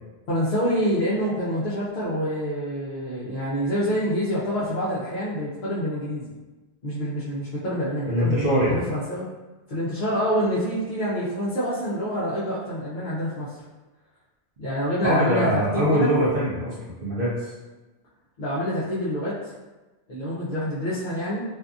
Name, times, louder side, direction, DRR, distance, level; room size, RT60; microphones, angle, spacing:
voice 1, 0.3-6.3 6.8-9.2 9.7-13.6 14.6-16.1 18.4-19.5 20.1-21.4, equal, 55° left, -10 dB, 0.6 m, -27 dB
voice 2, 8.1-8.8 15.0-17.5, equal, 60° right, -8 dB, 0.7 m, -23 dB
2.6 x 2.4 x 2.4 m, 1.2 s
omnidirectional pair, 1.2 m